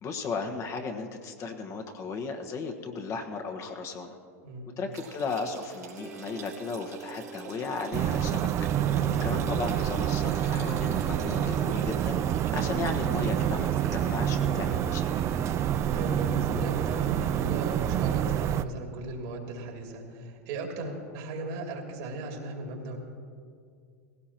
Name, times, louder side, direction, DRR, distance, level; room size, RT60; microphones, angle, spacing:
voice 1, 0.0-4.2 4.8-8.5 9.2-12.2 12.5-15.1, left 4 dB, 35° left, 4 dB, 1.4 m, -35 dB
sound 1, 4.9-14.2, right 6 dB, 85° right, 2.7 m, -45 dB
sound 2, 6.0-18.2, right 2 dB, 10° right, 0.7 m, -43 dB
sound 3, 7.9-18.6, right 10 dB, 35° right, 0.4 m, -27 dB
voice 2, 15.9-23.0, right 2 dB, 60° right, 1 dB, 2.7 m, -37 dB
19.0 x 16.5 x 3.0 m, 2.3 s
hypercardioid pair, 95°, 8 cm